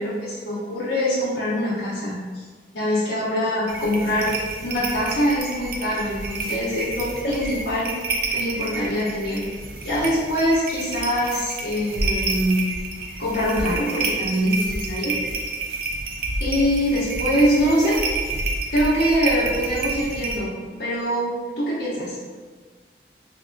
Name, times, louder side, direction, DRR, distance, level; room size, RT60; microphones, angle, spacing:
voice 1, 0.0-2.4 2.7-4.3 4.6-7.9 8.3-9.4 9.8-12.7 13.2-15.2 16.4-18.0 18.7-20.5 20.8-22.2, equal, 85° left, -9 dB, 0.7 m, -23 dB
sound 1, 3.7-20.4, right 2 dB, 55° right, 0.4 m, -29 dB
3.3 x 2.9 x 2.6 m, 1.5 s
head